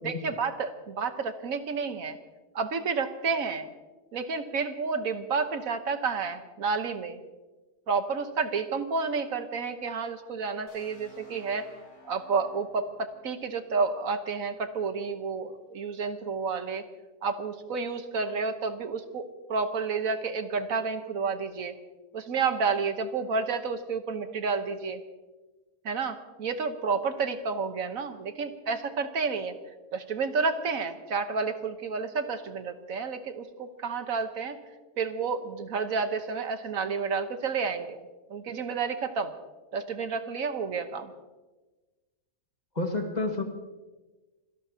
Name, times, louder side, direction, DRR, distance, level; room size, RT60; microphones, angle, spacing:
voice 1, 0.0-2.2 2.5-3.7 4.1-7.2 7.9-11.7 12.0-16.8 17.2-21.7 22.1-25.0 25.8-29.6 29.9-34.6 34.9-38.0 38.3-39.3 39.7-41.1, right 5 dB, 80° right, 8 dB, 1.5 m, -30 dB
sound 1, 10.7-14.5, left 2 dB, 55° left, 6.3 m, -56 dB
voice 2, 42.8-43.4, left 2 dB, 30° left, 3 dB, 1.8 m, -29 dB
26.0 x 17.5 x 2.8 m, 1.2 s
omnidirectional pair, 1.4 m